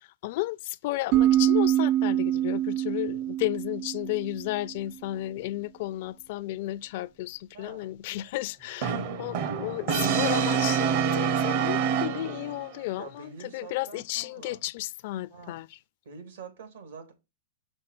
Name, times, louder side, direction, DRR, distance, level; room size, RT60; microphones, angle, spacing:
voice 1, 0.2-15.7, left 17 dB, 55° left, 0.4 m, -33 dB
sound 1, 1.1-4.7, right 13 dB, 35° right, 0.4 m, -25 dB
voice 2, 7.5-8.7 13.0-14.6 15.3-15.6 16.0-17.1, right 5 dB, 80° right, 3.4 m, -46 dB
Brass instrument, 8.8-12.6, right 7 dB, 55° right, 1.0 m, -26 dB
6.3 x 4.3 x 6.0 m
hypercardioid pair, 140°, 0 cm